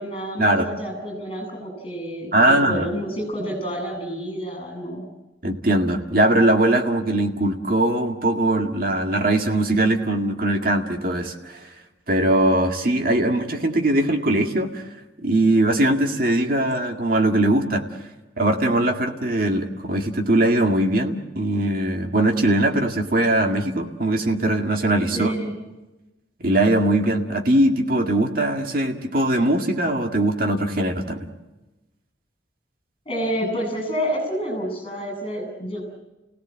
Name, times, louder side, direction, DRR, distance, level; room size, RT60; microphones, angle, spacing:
voice 1, 0.0-5.0 25.1-25.6 33.0-36.0, equal, 30° left, 4 dB, 7.8 m, -29 dB
voice 2, 2.3-2.9 5.4-11.6 12.1-14.8 15.2-17.8 18.4-25.3 26.4-31.3, right 1 dB, 50° right, 3 dB, 2.1 m, -21 dB
30.0 x 17.0 x 7.6 m, 1.1 s
head